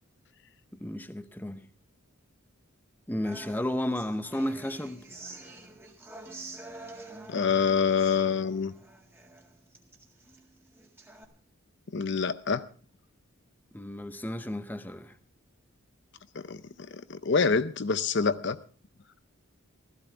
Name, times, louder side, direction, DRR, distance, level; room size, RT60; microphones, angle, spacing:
voice 1, 0.8-1.7 3.1-5.0 13.7-15.2, left 1 dB, 10° left, 0.7 m, -33 dB
Human voice / Acoustic guitar, 3.2-11.2, right 2 dB, 10° right, 1.9 m, -47 dB
voice 2, 7.3-8.7 11.9-12.6 16.3-16.6 16.9-18.6, left 5 dB, 55° left, 0.6 m, -26 dB
16.5 x 14.0 x 4.5 m
head